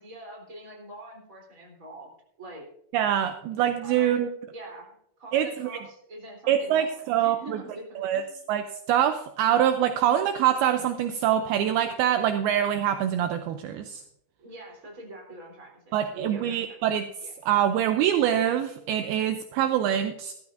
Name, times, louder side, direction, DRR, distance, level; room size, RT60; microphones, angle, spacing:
voice 1, 0.0-2.1 2.4-2.7 3.8-4.2 4.5-4.9 5.2-8.4 14.4-16.7 17.2-17.3, right 1 dB, 20° right, -1 dB, 3.5 m, -44 dB
voice 2, 2.9-4.3 5.3-5.8 6.5-7.6 8.0-8.2 8.5-14.0 15.9-20.3, right 10 dB, 80° right, 7 dB, 2.5 m, -25 dB
16.0 x 14.0 x 2.6 m, 0.75 s
omnidirectional pair, 4.7 m